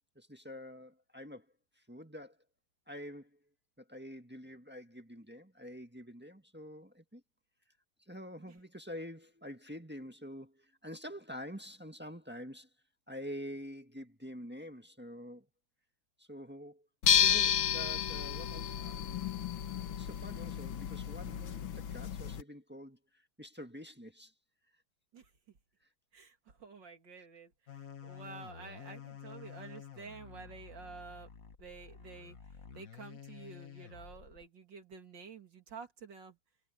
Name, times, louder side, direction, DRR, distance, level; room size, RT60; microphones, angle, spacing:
voice 1, 0.1-1.5 1.9-2.4 2.9-3.4 3.8-7.2 8.1-12.7 13.1-15.5 16.2-16.9 17.2-19.2 20.0-24.3, equal, 5° right, 1.3 m, -47 dB
sound 1, 17.0-22.4, left 9 dB, 70° left, 2.0 m, -31 dB
voice 2, 26.1-27.5 28.0-31.3 31.6-32.4 32.7-36.4, right 5 dB, 60° right, 3.3 m, -50 dB
sound 2, 27.7-34.4, left 7 dB, 45° left, 1.7 m, -50 dB
omnidirectional pair, 2.3 m